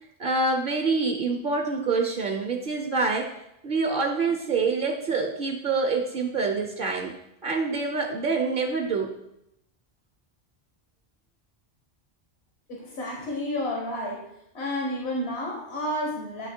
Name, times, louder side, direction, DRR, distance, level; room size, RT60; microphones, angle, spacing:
voice 1, 0.2-3.3 3.6-7.1 7.4-9.1, right 4 dB, 60° right, 2 dB, 0.8 m, -26 dB
voice 2, 12.7-14.2 14.5-16.5, left 1 dB, 80° left, -2 dB, 1.5 m, -30 dB
9.0 x 3.1 x 4.3 m, 0.80 s
omnidirectional pair, 1.1 m